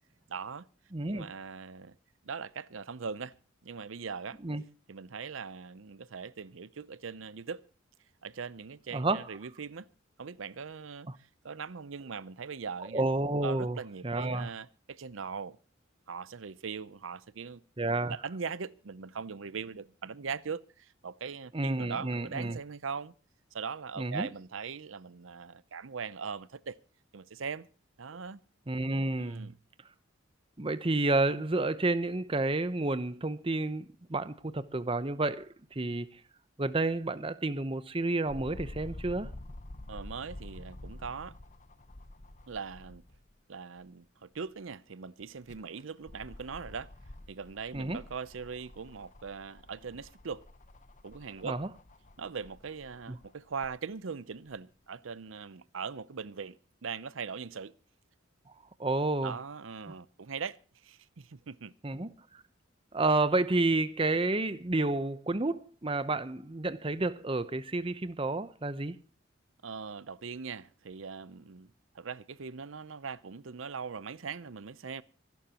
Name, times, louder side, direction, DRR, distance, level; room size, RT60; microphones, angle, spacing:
voice 1, 0.3-0.7 1.1-1.9 2.2-3.3 3.6-4.4 4.9-7.6 8.2-9.9 10.2-11.1 11.4-13.0 13.4-15.6 16.1-17.6 17.9-23.1 23.5-26.8 27.1-27.7 28.0-28.4 29.2-29.5 39.9-41.4 42.5-43.0 43.5-46.9 47.3-50.4 51.0-51.6 52.2-56.6 56.8-57.7 59.2-60.6 60.8-61.7 69.6-75.0, right 5 dB, 80° right, 0.7 m, -40 dB
voice 2, 0.9-1.3 4.4-4.6 8.9-9.2 12.9-13.8 14.0-14.5 17.8-18.2 21.5-22.6 24.0-24.3 28.7-29.5 30.6-36.1 36.6-39.3 47.7-48.0 51.4-51.7 53.1-53.2 58.8-59.4 61.8-62.4 62.9-69.0, right 2 dB, 25° right, 0.8 m, -30 dB
sound 1, 38.3-43.3 43.8-43.9 45.2-53.7 54.5-54.6, left 1 dB, 40° left, 1.0 m, -48 dB
26.0 x 12.0 x 2.9 m
head